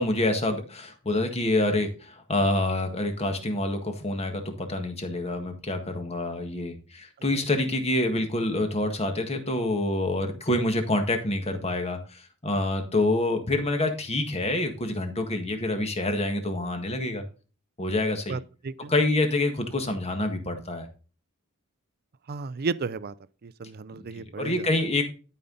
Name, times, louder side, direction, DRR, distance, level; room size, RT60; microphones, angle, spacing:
voice 1, 0.0-17.2 17.8-18.4 18.9-20.9 24.1-25.0, left 2 dB, 30° left, 1.7 m, -27 dB
voice 2, 18.3-18.9 22.3-23.1 23.4-24.6, right 4 dB, 45° right, 0.5 m, -33 dB
12.0 x 5.6 x 3.9 m
head